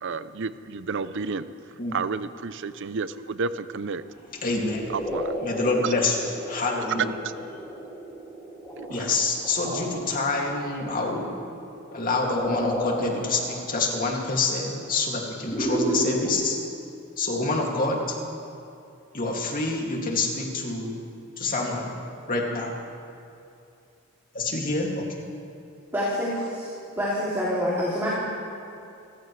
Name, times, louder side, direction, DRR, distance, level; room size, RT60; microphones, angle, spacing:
voice 1, 0.0-4.0 4.9-5.3 5.8-5.9 6.9-7.0 8.7-9.2, right 4 dB, 60° right, 13 dB, 0.6 m, -31 dB
sound 1, 4.3-16.3, equal, 15° left, 3.4 m, -32 dB
voice 2, 4.4-4.8 5.4-7.1 8.9-11.4 11.9-16.6 17.2-18.2 19.1-21.0 21.4-21.9 22.3-22.8 24.3-25.2, left 3 dB, 40° left, -1 dB, 2.4 m, -27 dB
voice 3, 25.9-26.7 27.0-28.1, equal, 10° right, -8 dB, 2.7 m, -26 dB
28.5 x 15.0 x 3.3 m, 2.6 s
head